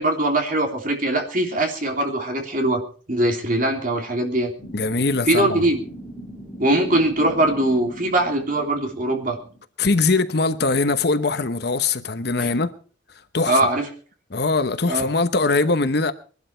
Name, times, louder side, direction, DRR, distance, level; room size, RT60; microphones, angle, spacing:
voice 1, 0.0-2.8 3.1-4.5 5.3-5.8 6.6-9.4 12.4-12.6 13.5-13.8 14.9-15.1, right 1 dB, 45° right, 3.2 m, -21 dB
sound 1, 4.6-9.6, right 1 dB, 10° left, 6.1 m, -40 dB
voice 2, 4.7-5.6 9.8-12.7 13.3-13.6 14.3-16.1, left 3 dB, 60° left, 1.0 m, -21 dB
21.5 x 12.0 x 4.5 m
head